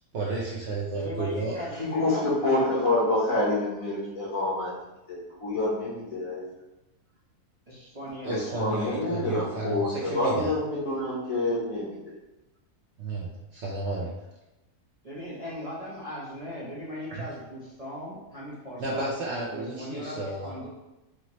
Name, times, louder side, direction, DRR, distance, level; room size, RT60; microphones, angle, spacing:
voice 1, 0.1-1.6 8.2-10.5 13.0-14.1 17.1-17.3 18.8-20.5, right 2 dB, 60° right, -4 dB, 0.8 m, -32 dB
voice 2, 0.9-2.8 3.2-3.4 7.7-8.9 15.0-19.1 19.5-20.7, equal, 30° right, -8 dB, 0.8 m, -39 dB
voice 3, 1.8-4.7 5.1-6.4 8.3-12.0, left 2 dB, 60° left, -5 dB, 1.6 m, -27 dB
4.8 x 2.9 x 3.0 m, 1.0 s
omnidirectional pair, 1.6 m